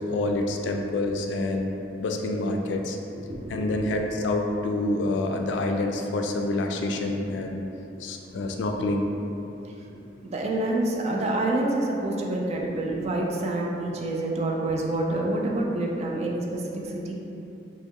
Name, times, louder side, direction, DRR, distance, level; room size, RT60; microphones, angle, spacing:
voice 1, 0.0-1.7 2.0-3.0 3.5-7.6 8.0-9.1, left 2 dB, 75° left, 3 dB, 0.3 m, -27 dB
voice 2, 3.1-3.7 10.2-17.1, right 2 dB, 35° right, -1 dB, 0.3 m, -27 dB
3.1 x 2.1 x 3.5 m, 2.9 s
head